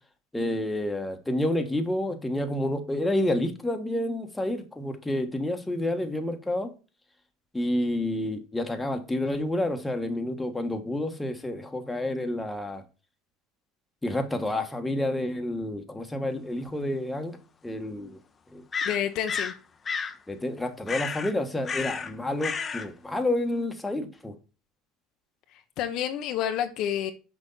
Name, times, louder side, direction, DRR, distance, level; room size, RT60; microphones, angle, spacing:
voice 1, 0.3-6.7 7.5-12.8 14.0-17.4 17.6-18.2 18.5-18.6 20.3-24.3, left 1 dB, 10° left, 1.4 m, -29 dB
sound 1, 16.7-16.8 18.7-19.6 19.9-20.2 20.9-21.3 21.6-22.1 22.4-22.9, left 5 dB, 25° left, 0.8 m, -31 dB
voice 2, 18.8-19.5 25.8-27.1, left 10 dB, 60° left, 0.8 m, -29 dB
6.3 x 5.2 x 4.0 m
supercardioid pair, 100°, 0 cm